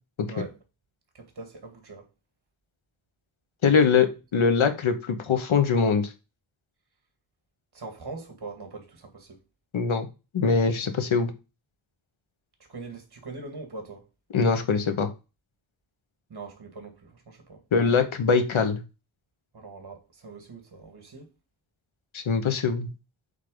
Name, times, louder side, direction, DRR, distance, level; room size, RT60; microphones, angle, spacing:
voice 1, 1.1-2.1 3.7-3.9 7.7-9.4 12.7-14.0 16.3-17.6 19.5-21.3, right 3 dB, 55° right, 2.1 m, -42 dB
voice 2, 3.6-6.1 9.7-10.1 10.3-11.3 14.3-15.1 17.7-18.8 22.1-22.9, left 5 dB, 85° left, 1.3 m, -22 dB
8.4 x 3.8 x 3.9 m
wide cardioid pair, 120°, 46 cm